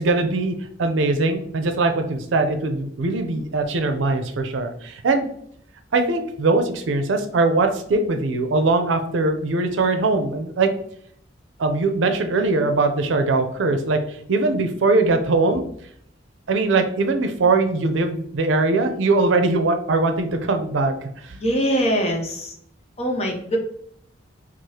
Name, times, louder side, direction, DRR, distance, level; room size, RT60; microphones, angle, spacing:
voice 1, 0.0-5.3 5.9-10.7 11.6-15.6 16.5-21.3, right 3 dB, 90° right, 6 dB, 0.5 m, -21 dB
voice 2, 21.4-22.5 23.0-23.6, equal, 35° left, 1 dB, 0.7 m, -22 dB
4.7 x 2.0 x 2.7 m, 0.66 s
head